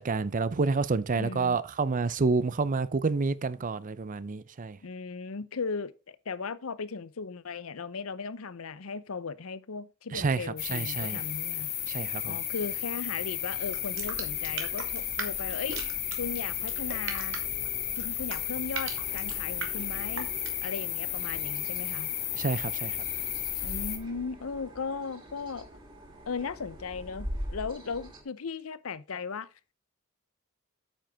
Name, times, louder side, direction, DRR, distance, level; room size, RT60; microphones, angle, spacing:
voice 1, 0.0-4.8 10.1-10.4 10.7-11.2 11.9-12.4 22.3-23.0, right 4 dB, 40° right, 0.5 m, -28 dB
voice 2, 1.2-1.6 4.8-11.7 12.2-15.8 16.2-17.4 18.0-20.3 20.6-22.1 23.6-25.7 26.3-29.5, left 5 dB, 85° left, 0.7 m, -37 dB
sound 1, 10.6-24.0, left 11 dB, 50° left, 2.0 m, -33 dB
sound 2, 13.5-20.7, right 4 dB, 65° right, 2.3 m, -41 dB
sound 3, 18.8-28.2, equal, 25° right, 2.7 m, -44 dB
9.0 x 7.7 x 3.5 m
head